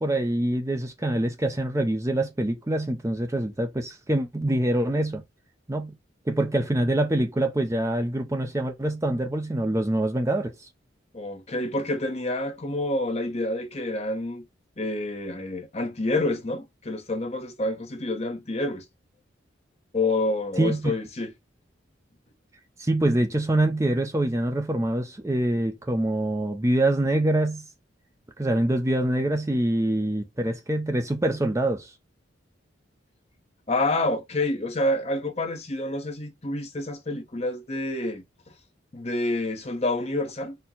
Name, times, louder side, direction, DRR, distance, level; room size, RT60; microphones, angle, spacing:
voice 1, 0.0-5.2 5.7-5.9 6.3-10.5 20.6-20.9 22.8-27.6 28.4-31.9, right 1 dB, 15° right, 0.5 m, -25 dB
voice 2, 11.1-14.4 14.8-18.8 19.9-21.3 33.7-38.5 38.9-40.6, left 2 dB, 35° left, 0.9 m, -28 dB
4.4 x 2.2 x 3.7 m
head